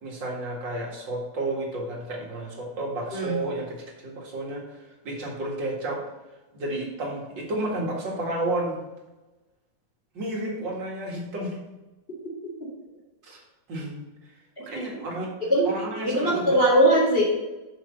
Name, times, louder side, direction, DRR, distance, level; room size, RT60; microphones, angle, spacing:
voice 1, 0.0-4.8 5.0-6.0 6.5-8.8 10.1-11.6 13.2-13.4 13.7-14.1 14.6-15.3 15.6-16.6, right 1 dB, 80° right, -2 dB, 2.7 m, -31 dB
voice 2, 16.0-17.2, right 1 dB, 30° left, -10 dB, 2.8 m, -20 dB
6.6 x 6.1 x 6.5 m, 1.1 s
omnidirectional pair, 2.0 m